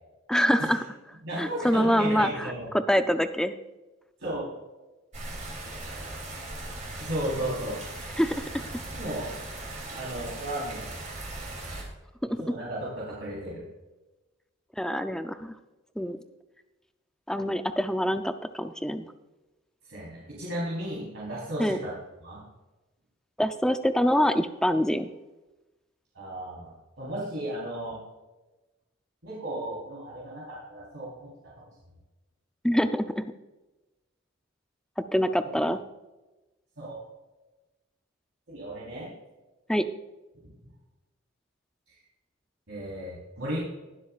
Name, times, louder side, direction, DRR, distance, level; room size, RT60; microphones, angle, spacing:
voice 1, 0.3-0.8 1.4-3.5 8.2-8.5 12.3-12.4 14.8-15.5 16.0-16.2 17.3-19.1 21.6-21.8 23.4-25.1 32.6-33.3 35.1-35.8 39.7-39.9, equal, 5° left, 9 dB, 0.4 m, -25 dB
voice 2, 1.2-2.7 4.2-4.5 7.0-7.8 8.9-9.3 9.9-10.9 12.3-13.6 19.8-21.9 22.2-22.4 26.1-28.0 29.2-31.3 31.6-31.7 36.8-37.0 38.5-39.1 41.9-42.0 42.7-43.6, right 1 dB, 75° right, -7 dB, 3.9 m, -34 dB
sound 1, 5.1-11.8, right 2 dB, 35° right, 2.9 m, -38 dB
20.5 x 7.5 x 2.4 m, 1.1 s
head